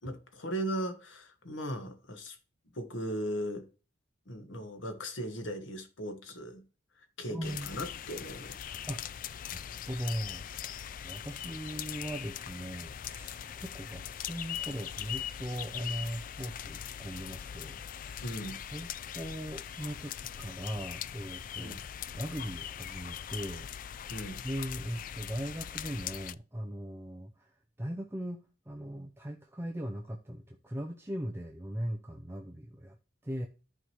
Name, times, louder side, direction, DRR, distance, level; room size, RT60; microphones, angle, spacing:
voice 1, 0.0-2.4 2.7-3.7 4.3-6.6 6.9-8.7 18.2-18.6 21.6-21.8 24.1-24.4, equal, 90° left, 1.6 m, -38 dB
voice 2, 7.3-7.8 8.9-9.0 9.5-9.6 9.9-10.5 11.0-18.2 18.7-18.9 19.1-21.8 22.1-23.7 24.4-27.5 27.8-33.0 33.2-33.5, equal, 15° right, 0.7 m, -39 dB
sound 1, 7.4-26.3, left 9 dB, 45° left, 0.3 m, -41 dB
14.0 x 4.9 x 3.1 m
head